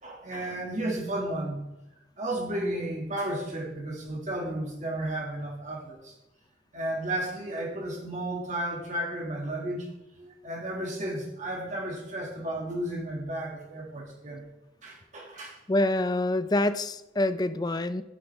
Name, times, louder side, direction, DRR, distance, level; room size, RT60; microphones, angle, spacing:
voice 1, 0.0-1.7 2.2-6.1 6.7-9.9 10.2-14.4 14.8-15.6, right 1 dB, 45° right, -2 dB, 2.2 m, -33 dB
voice 2, 15.7-18.0, left 1 dB, 25° left, 13 dB, 0.5 m, -26 dB
11.5 x 10.5 x 3.5 m, 0.94 s
head